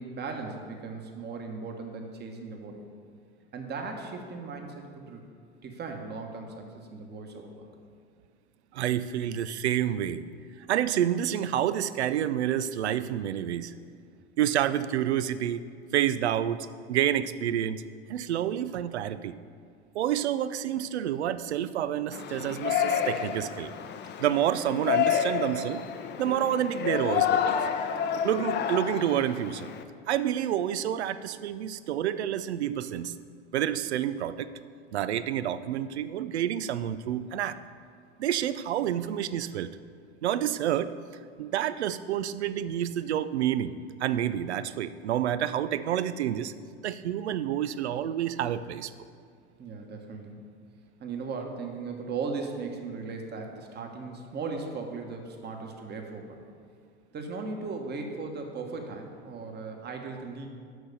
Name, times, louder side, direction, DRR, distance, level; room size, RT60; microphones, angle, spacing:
voice 1, 0.0-2.8 3.5-5.2 5.6-7.7 49.6-50.5 51.0-56.4 57.1-60.5, right 4 dB, 30° right, 3 dB, 1.3 m, -37 dB
voice 2, 8.7-10.2 10.7-13.7 14.4-15.6 15.9-17.8 18.1-19.3 19.9-23.7 24.2-25.8 26.2-27.7 28.2-29.7 30.1-33.1 33.5-34.5 34.9-37.6 38.2-39.7 40.2-40.9 41.4-43.7 44.0-46.5 46.8-48.9, right 10 dB, 85° right, 14 dB, 0.5 m, -28 dB
Yell, 22.1-29.8, left 8 dB, 35° left, 0.6 m, -29 dB
6.4 x 5.9 x 6.7 m, 2.2 s
hypercardioid pair, 85°, 32 cm